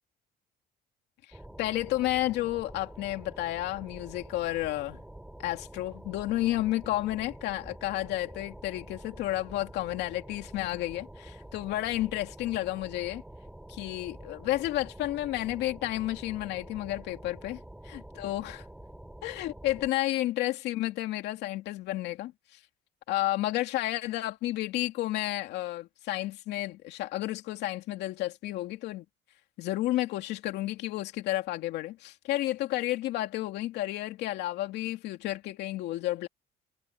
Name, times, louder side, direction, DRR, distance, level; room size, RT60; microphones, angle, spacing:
voice 1, 1.3-5.0 5.4-13.2 13.7-18.6 19.2-22.6 23.1-29.0 29.6-36.3, left 15 dB, 85° left, 2.5 m, -31 dB
sound 1, 1.3-19.9, right 1 dB, 5° right, 3.5 m, -47 dB
cardioid pair, 110°, 17 cm